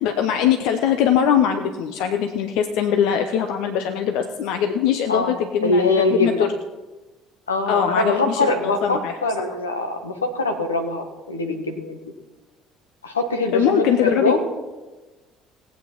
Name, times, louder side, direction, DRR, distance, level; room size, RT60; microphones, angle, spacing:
voice 1, 0.0-5.8 6.2-6.5 7.7-9.5 13.5-14.4, left 8 dB, 60° left, 7 dB, 0.8 m, -21 dB
voice 2, 5.6-6.5 7.5-12.0 13.0-14.4, left 3 dB, 80° left, 6 dB, 1.3 m, -23 dB
17.5 x 8.7 x 5.8 m, 1.2 s
figure-of-eight pair, 55°, 0 cm